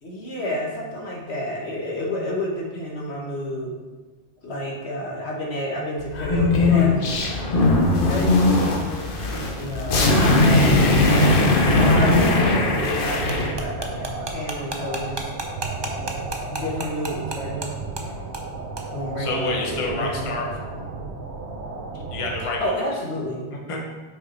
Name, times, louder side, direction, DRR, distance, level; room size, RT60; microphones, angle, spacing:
voice 1, 0.0-3.7 4.4-9.0 9.5-11.4 11.7-15.3 16.5-17.8 18.9-20.9 22.6-23.5, equal, 75° left, -2 dB, 1.5 m, -30 dB
sound 1, 6.1-13.5, left 2 dB, 55° left, 1.1 m, -19 dB
sound 2, 12.5-22.4, right 3 dB, 90° right, 1.2 m, -34 dB
sound 3, 13.3-17.7 18.0-18.1 18.3-18.5 18.8-18.9, right 3 dB, 30° right, 0.6 m, -31 dB
voice 2, 19.2-20.5 21.9-22.8 23.5-23.9, left 2 dB, 30° left, -1 dB, 0.9 m, -30 dB
5.8 x 4.9 x 4.4 m, 1.3 s
omnidirectional pair, 1.1 m